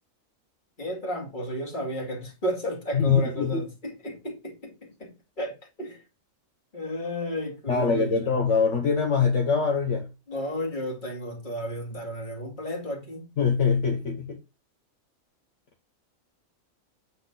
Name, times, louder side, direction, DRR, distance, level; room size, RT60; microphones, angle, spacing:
voice 1, 0.8-6.0 6.7-8.4 10.3-13.3, equal, 35° left, 2.4 m, -33 dB
voice 2, 2.9-3.6 7.7-10.1 13.4-14.4, left 5 dB, 65° left, 1.4 m, -23 dB
9.1 x 3.8 x 3.9 m
omnidirectional pair, 1.4 m